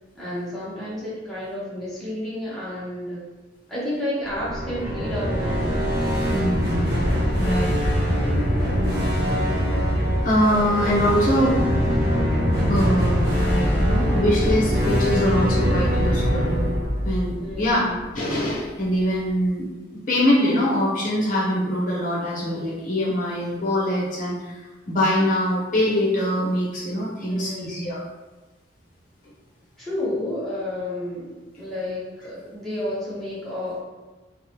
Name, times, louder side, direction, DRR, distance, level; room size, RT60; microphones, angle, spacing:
voice 1, 0.1-3.2 3.7-5.7 17.4-18.1 27.3-27.8 29.8-33.8, left 1 dB, ahead, -9 dB, 0.7 m, -31 dB
sound 1, 4.3-18.3, equal, 55° right, 0.7 m, -23 dB
voice 2, 6.3-7.0 7.4-7.7 9.6-9.7 10.2-11.6 12.7-16.7 17.0-17.8 18.1-19.7 20.1-24.6 24.9-28.0, equal, 45° left, -6 dB, 0.6 m, -23 dB
2.8 x 2.0 x 2.8 m, 1.2 s
head